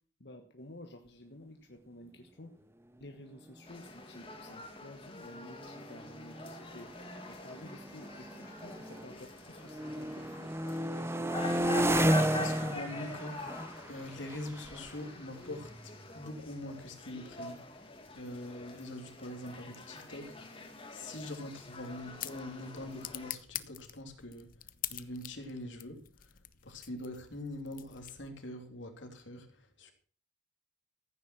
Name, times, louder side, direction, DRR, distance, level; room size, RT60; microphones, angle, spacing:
voice 1, 0.2-2.5 3.0-6.9 7.3-10.5, left 1 dB, 60° left, 1.5 m, -52 dB
sound 1, 3.7-23.3, left 2 dB, 30° left, 2.2 m, -45 dB
sound 2, 3.9-4.0 4.2-4.6 5.3-9.3 9.6-16.3, right 1 dB, 15° right, 0.6 m, -34 dB
voice 2, 11.4-20.4 20.9-26.4 26.6-29.9, left 1 dB, 85° left, 3.1 m, -44 dB
sound 3, 21.6-28.5, left 13 dB, 45° left, 0.8 m, -46 dB
15.0 x 9.5 x 6.1 m
head